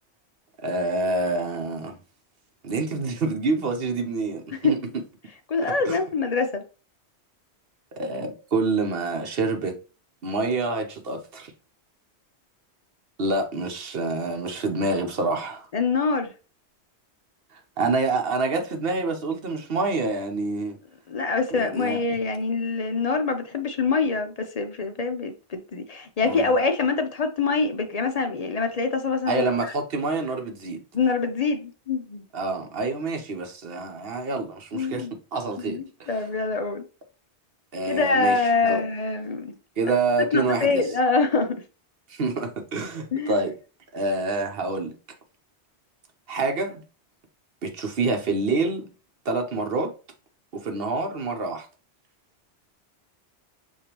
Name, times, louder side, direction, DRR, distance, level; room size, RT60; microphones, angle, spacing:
voice 1, 0.6-2.0 2.6-4.8 5.6-6.0 8.0-9.8 10.2-11.5 13.2-15.7 17.8-20.8 21.5-22.0 26.2-26.5 29.3-30.8 32.3-36.3 37.7-38.8 39.8-40.9 42.1-43.5 43.9-44.9 46.3-46.8 47.6-48.9 49.2-49.9 50.5-51.7, right 3 dB, 60° right, 1.0 m, -27 dB
voice 2, 5.5-6.6 15.7-16.3 19.5-19.7 21.1-29.4 30.9-32.2 34.7-35.1 35.6-36.8 37.8-39.6 40.3-41.5 43.1-43.3, left 4 dB, 50° left, 0.5 m, -25 dB
6.8 x 2.7 x 2.9 m
omnidirectional pair, 1.2 m